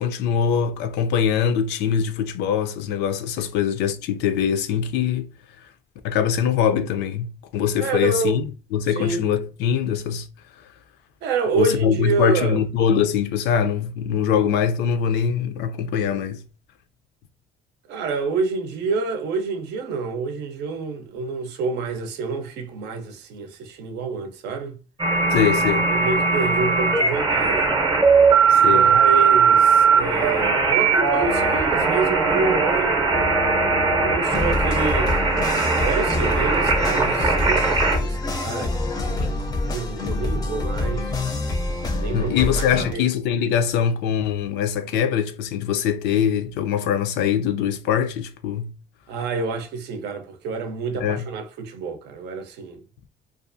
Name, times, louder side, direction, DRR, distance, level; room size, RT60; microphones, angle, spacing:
voice 1, 0.0-5.3 6.0-10.3 11.5-16.4 25.3-25.9 28.5-29.0 39.2-39.3 42.1-48.7 50.9-51.3, left 8 dB, 80° left, 0.4 m, -23 dB
voice 2, 7.8-8.4 8.9-9.3 11.2-12.6 17.9-24.8 25.9-27.7 28.6-33.0 34.0-35.2 35.7-41.1 42.0-43.0 49.1-52.8, right 4 dB, 80° right, 0.6 m, -28 dB
sound 1, 25.0-38.0, right 4 dB, 25° right, 0.6 m, -19 dB
sound 2, 34.3-42.9, left 2 dB, 20° left, 0.4 m, -26 dB
2.4 x 2.4 x 2.5 m
cardioid pair, 110°, 17 cm